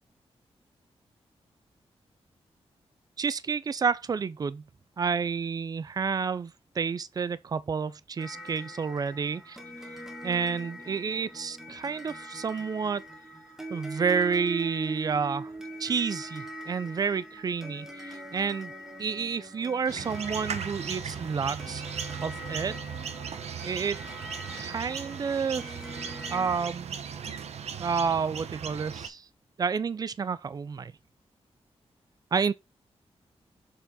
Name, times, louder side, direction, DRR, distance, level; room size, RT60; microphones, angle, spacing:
voice 1, 3.2-4.6 5.0-9.4 10.2-13.0 13.7-15.5 15.8-18.7 19.0-21.8 22.2-22.8 23.6-24.0 24.5-25.7 26.3-27.0 27.8-29.3 29.6-30.9 32.3-32.5, right 5 dB, 35° right, 0.4 m, -30 dB
sound 1, 8.2-26.6, equal, 5° right, 1.3 m, -42 dB
sound 2, 19.9-29.1, right 7 dB, 80° right, 0.7 m, -37 dB
6.9 x 4.3 x 3.7 m
wide cardioid pair, 180°, 11 cm